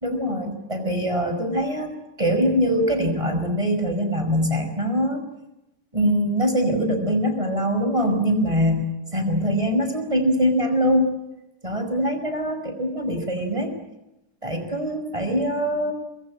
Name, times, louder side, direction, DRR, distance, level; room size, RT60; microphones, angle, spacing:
voice 1, 0.0-5.3 5.9-11.1 11.6-13.8 14.4-15.9, equal, 20° right, 6 dB, 5.4 m, -23 dB
25.0 x 22.0 x 8.7 m, 0.93 s
omnidirectional pair, 1.6 m